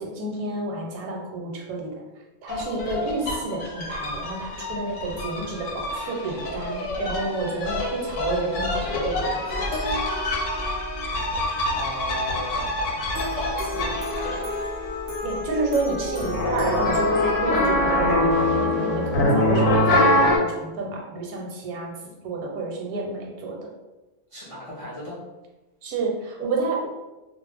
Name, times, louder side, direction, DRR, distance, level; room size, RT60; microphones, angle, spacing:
voice 1, 0.0-1.9 2.4-9.7 15.2-21.9 22.2-23.6 25.8-26.9, right 2 dB, 85° right, 0 dB, 1.1 m, -29 dB
sound 1, 2.5-14.6 16.2-20.4, left 1 dB, 65° left, 0.8 m, -25 dB
sound 2, 9.5-19.2, left 1 dB, 30° right, 0.6 m, -33 dB
voice 2, 11.7-13.0 13.3-14.5 24.3-25.2, equal, 50° left, -9 dB, 0.4 m, -36 dB
2.4 x 2.0 x 3.2 m, 1.1 s
omnidirectional pair, 1.5 m